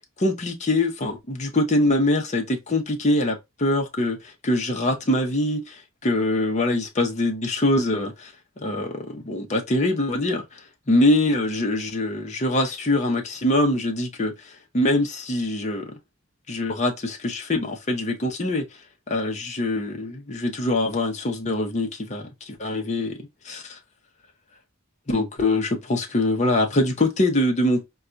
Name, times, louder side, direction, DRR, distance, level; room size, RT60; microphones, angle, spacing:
voice 1, 0.2-4.2 4.4-8.3 8.6-10.6 10.9-15.9 16.5-18.6 19.1-23.2 23.4-23.8 25.1-27.8, left 1 dB, 35° left, 0.8 m, -23 dB
4.1 x 2.3 x 2.4 m
head